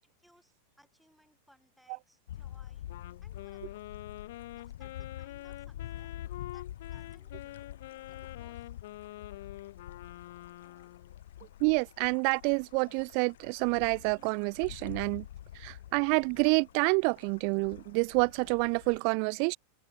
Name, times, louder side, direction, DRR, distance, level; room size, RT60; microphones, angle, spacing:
voice 1, 0.0-2.9 3.2-4.0 4.6-6.1 6.5-7.7 8.1-8.7 10.6-10.9, equal, ahead, 6.4 m, -65 dB
sound 1, 2.3-19.0, left 12 dB, 80° left, 0.9 m, -47 dB
Wind instrument woodwind instrument, 2.9-11.2, left 16 dB, 55° left, 1.3 m, -46 dB
voice 2, 11.6-15.3 15.6-19.6, right 40 dB or more, 35° right, 0.3 m, -28 dB
supercardioid pair, 175°, 0 cm